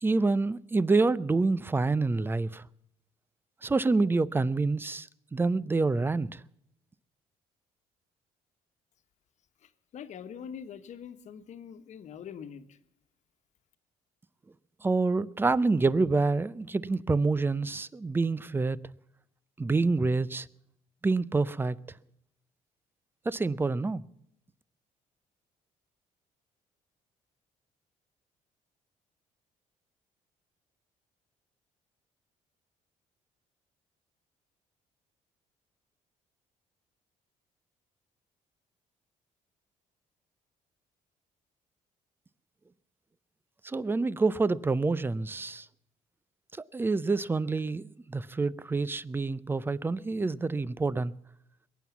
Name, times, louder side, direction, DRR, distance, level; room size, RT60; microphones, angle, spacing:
voice 1, 0.0-2.6 3.6-6.4 14.8-18.8 19.6-20.5 21.0-21.8 23.3-24.0 43.6-45.7 46.6-51.1, right 3 dB, 15° right, 0.5 m, -27 dB
voice 2, 9.6-12.8, left 8 dB, 60° left, 1.3 m, -44 dB
21.5 x 9.3 x 7.2 m
cardioid pair, 100°, 14 cm